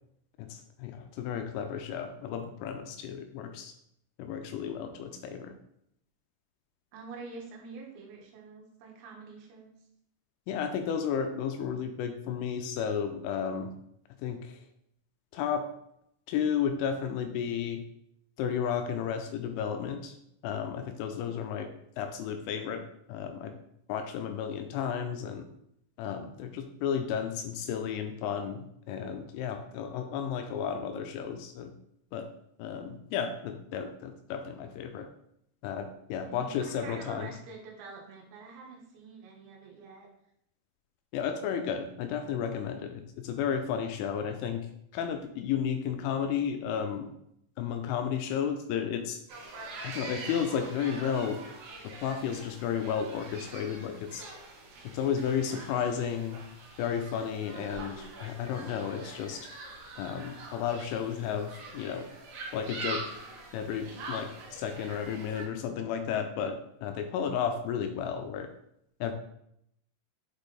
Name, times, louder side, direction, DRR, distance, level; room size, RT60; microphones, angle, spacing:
voice 1, 0.4-3.7 4.2-5.6 10.5-13.7 14.2-14.6 15.3-15.7 16.3-17.8 18.4-20.1 20.4-22.8 23.1-23.6 23.9-25.5 26.0-31.7 32.1-32.3 32.6-35.1 35.6-37.3 41.1-44.7 44.9-47.1 47.6-49.2 49.8-51.4 51.8-54.2 54.8-56.4 56.8-59.5 60.0-62.1 62.5-63.2 63.5-68.5 69.0-69.1, left 7 dB, 85° left, 6 dB, 2.9 m, -33 dB
voice 2, 6.9-9.8 36.3-40.1, right 4 dB, 90° right, -1 dB, 4.0 m, -46 dB
sound 1, 49.3-65.4, right 3 dB, 70° right, 2.9 m, -44 dB
8.1 x 3.3 x 4.1 m, 0.75 s
omnidirectional pair, 5.9 m